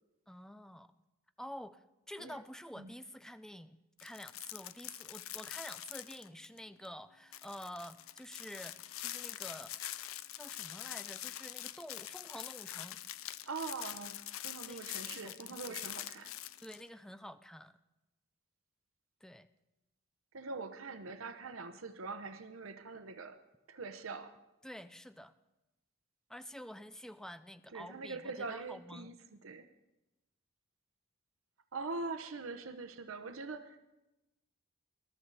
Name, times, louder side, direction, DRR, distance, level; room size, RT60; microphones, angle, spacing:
voice 1, 0.3-0.9 1.4-9.7 10.3-13.0 14.7-14.8 15.1-15.8 16.6-17.8 19.2-19.5 24.6-25.3 26.3-29.1, equal, 5° left, 13 dB, 0.4 m, -49 dB
sound 1, 4.0-6.6 6.8-6.9 7.3-16.8, left 13 dB, 90° left, 0.5 m, -44 dB
voice 2, 13.5-14.2 14.4-16.4 20.3-23.4 23.7-24.4 27.7-29.2 29.4-29.7 31.7-33.8, right 4 dB, 85° right, 9 dB, 0.9 m, -43 dB
21.0 x 12.5 x 4.1 m, 0.99 s
head